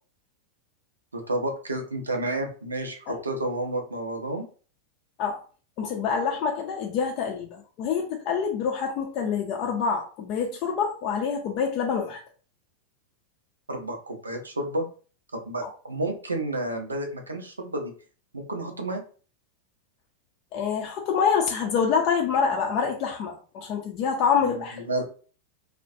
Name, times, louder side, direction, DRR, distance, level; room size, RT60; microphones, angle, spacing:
voice 1, 1.1-4.5 13.7-14.9 15.3-17.9 18.3-19.0 24.4-25.0, right 1 dB, 80° right, 0.5 m, -31 dB
voice 2, 5.8-12.2 20.5-24.8, left 6 dB, 40° left, 0.4 m, -26 dB
2.3 x 2.1 x 2.6 m
figure-of-eight pair, 90°, 0 cm